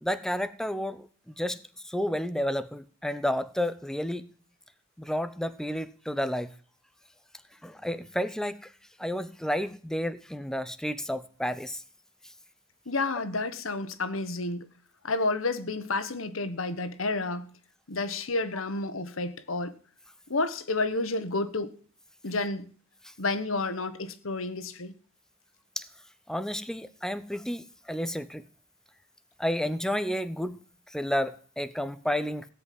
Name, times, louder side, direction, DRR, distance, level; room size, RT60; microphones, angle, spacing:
voice 1, 0.0-1.6 1.8-4.3 5.0-6.5 7.6-8.7 9.0-11.8 25.8-25.9 26.3-28.4 29.4-30.6 30.9-32.5, equal, 5° left, 0.7 m, -31 dB
voice 2, 12.9-14.7 15.0-17.5 17.9-19.7 20.3-21.7 22.2-22.7 23.2-24.9, left 3 dB, 85° left, 1.5 m, -30 dB
17.0 x 5.7 x 9.5 m
head